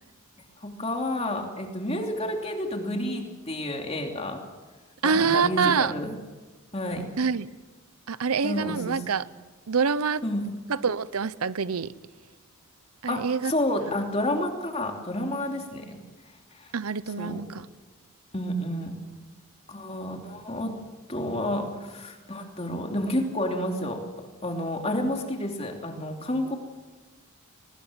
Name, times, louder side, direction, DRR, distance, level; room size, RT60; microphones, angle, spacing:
voice 1, 0.6-4.4 5.0-6.1 6.7-7.1 8.4-9.0 10.2-10.4 13.1-16.0 16.6-16.7 17.2-17.4 18.3-19.0 19.7-20.7 21.1-24.1 24.4-26.6, left 1 dB, 30° left, 3 dB, 3.0 m, -30 dB
voice 2, 5.0-5.9 7.2-7.5 8.1-9.2 9.7-10.2 10.7-11.9 13.0-13.5 16.7-17.7, right 5 dB, 90° right, 17 dB, 0.7 m, -25 dB
23.0 x 20.0 x 7.5 m, 1.3 s
head